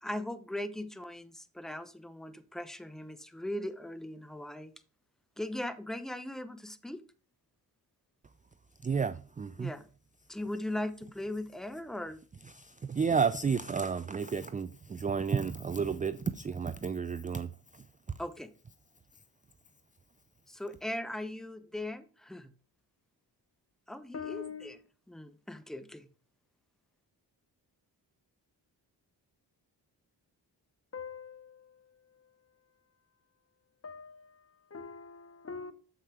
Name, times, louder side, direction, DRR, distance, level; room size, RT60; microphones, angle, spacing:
voice 1, 0.0-4.7 5.4-7.0 9.6-9.9 10.3-12.2 18.2-18.5 20.5-22.5 23.9-24.8 25.1-26.1, left 1 dB, ahead, 0.8 m, -39 dB
voice 2, 8.8-9.7 12.5-18.2, right 6 dB, 20° right, 0.3 m, -32 dB
voice 3, 24.1-24.7 30.9-31.9 33.8-35.7, left 6 dB, 30° left, 0.9 m, -44 dB
7.3 x 5.7 x 3.4 m
supercardioid pair, 40°, 45 cm